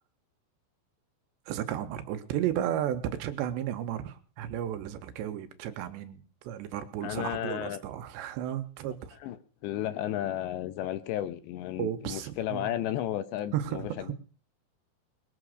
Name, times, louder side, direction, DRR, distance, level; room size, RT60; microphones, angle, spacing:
voice 1, 1.5-9.2 11.8-12.7 13.5-14.1, right 11 dB, 75° right, 9 dB, 3.2 m, -33 dB
voice 2, 7.0-7.8 9.2-14.1, left 12 dB, 75° left, 13 dB, 3.0 m, -33 dB
20.5 x 8.2 x 6.5 m, 0.40 s
omnidirectional pair, 5.3 m